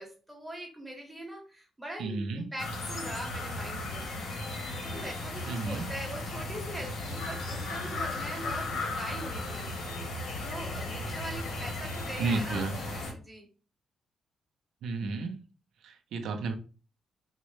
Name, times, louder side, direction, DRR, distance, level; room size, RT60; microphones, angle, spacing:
voice 1, 0.0-4.0 4.7-9.7 10.4-13.5, right 1 dB, 5° right, 0.9 m, -42 dB
voice 2, 2.0-2.4 5.5-5.9 12.2-12.8 14.8-15.4 15.8-16.5, right 3 dB, 80° right, 0.5 m, -32 dB
sound 1, 2.6-13.1, left 2 dB, 85° left, 1.0 m, -36 dB
3.6 x 2.1 x 3.1 m
cardioid pair, 160°, 0 cm